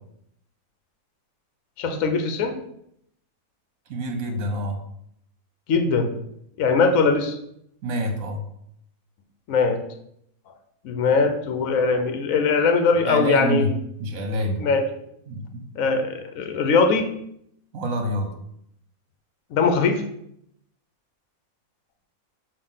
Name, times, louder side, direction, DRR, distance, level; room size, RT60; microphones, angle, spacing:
voice 1, 1.8-2.6 5.7-6.2 6.6-7.4 9.5-9.8 10.8-13.7 14.6-14.8 15.7-17.1 19.5-20.0, left 4 dB, 70° left, 6 dB, 1.1 m, -21 dB
voice 2, 3.9-4.8 7.8-8.4 13.0-13.7 14.0-14.7 15.3-15.6 17.7-18.3, right 1 dB, 70° right, 4 dB, 1.4 m, -26 dB
6.6 x 2.7 x 5.5 m, 0.74 s
omnidirectional pair, 1.5 m